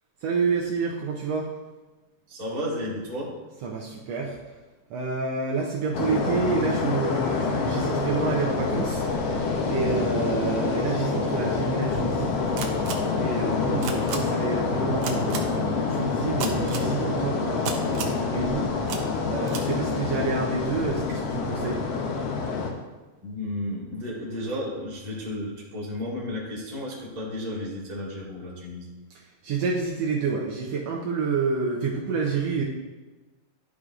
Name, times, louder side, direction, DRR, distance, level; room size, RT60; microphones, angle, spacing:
voice 1, 0.2-1.5 3.6-4.4 4.9-9.0 9.7-12.3 13.1-18.7 19.2-21.8 29.4-32.6, right 4 dB, 75° right, -2 dB, 1.6 m, -28 dB
voice 2, 2.3-3.3 23.2-28.8, left 1 dB, 20° right, -6 dB, 1.1 m, -33 dB
sound 1, 5.9-22.7, left 4 dB, 70° left, 1.5 m, -27 dB
sound 2, 12.6-12.9 13.8-14.2 15.0-15.4 16.4-16.8 17.6-18.2 18.9-19.0 19.5-19.6, right 7 dB, 90° right, 1.2 m, -31 dB
12.0 x 4.8 x 2.4 m, 1.2 s
omnidirectional pair, 3.5 m